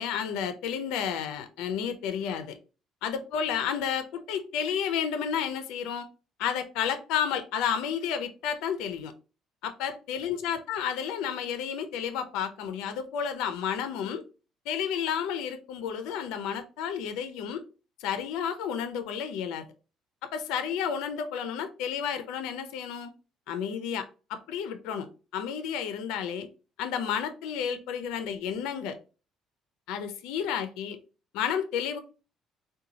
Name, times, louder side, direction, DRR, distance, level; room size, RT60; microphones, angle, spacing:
voice 1, 0.0-2.6 3.0-6.1 6.4-9.1 9.6-14.2 14.7-17.6 18.0-19.6 20.3-23.1 23.5-25.1 25.3-26.5 26.8-29.0 29.9-31.0 31.3-32.0, left 8 dB, 90° left, 0.4 m, -31 dB
3.8 x 2.2 x 2.8 m
cardioid pair, 135°, 0 cm